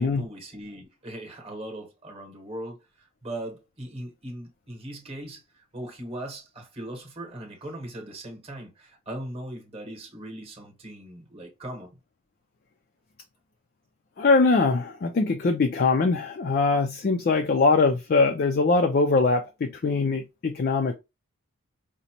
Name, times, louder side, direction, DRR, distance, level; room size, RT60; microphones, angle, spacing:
voice 1, 0.0-2.8 3.2-12.0, right 1 dB, 25° right, 0.9 m, -39 dB
voice 2, 14.2-20.9, left 3 dB, 45° left, 0.3 m, -22 dB
5.0 x 2.0 x 2.8 m
head